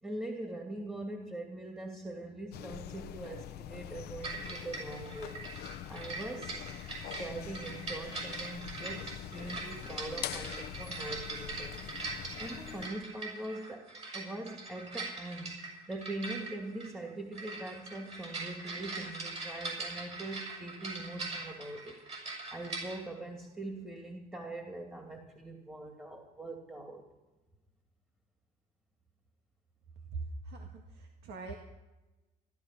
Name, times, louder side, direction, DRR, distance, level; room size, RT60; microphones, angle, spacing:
voice 1, 0.0-5.4 5.9-11.8 12.4-15.6 15.9-22.0 22.5-27.0, right 2 dB, 10° right, 3 dB, 2.5 m, -42 dB
sound 1, 2.5-12.9, left 12 dB, 70° left, 0.7 m, -44 dB
sound 2, 4.2-23.0, right 3 dB, 40° right, 6.5 m, -42 dB
voice 2, 30.1-31.6, right 3 dB, 80° right, 2 dB, 1.8 m, -42 dB
15.5 x 12.5 x 6.0 m, 1.1 s
cardioid pair, 110°, 17 cm